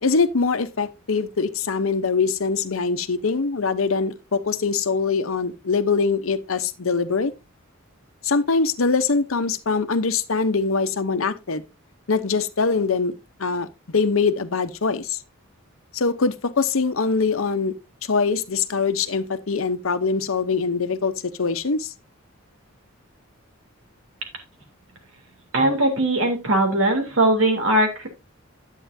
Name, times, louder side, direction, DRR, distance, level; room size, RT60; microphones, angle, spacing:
voice 1, 0.0-7.3 8.2-11.6 12.1-13.1 13.4-15.2 15.9-17.7 18.1-21.1 21.4-21.9, left 4 dB, 75° left, 0.8 m, -23 dB
voice 2, 25.5-28.1, right 1 dB, 75° right, 3.2 m, -20 dB
10.5 x 8.3 x 2.7 m
head